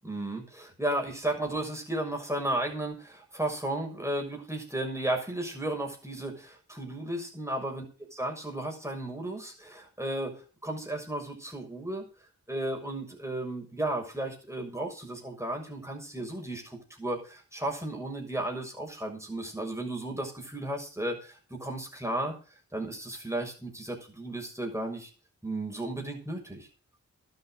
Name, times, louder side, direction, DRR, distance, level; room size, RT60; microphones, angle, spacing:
voice 1, 0.0-7.8 8.2-10.3 10.6-12.0 12.5-22.3 22.7-25.1 25.4-26.7, right 1 dB, 10° right, 1 dB, 6.6 m, -34 dB
12.0 x 8.3 x 7.9 m, 0.37 s
cardioid pair, 40°, 33 cm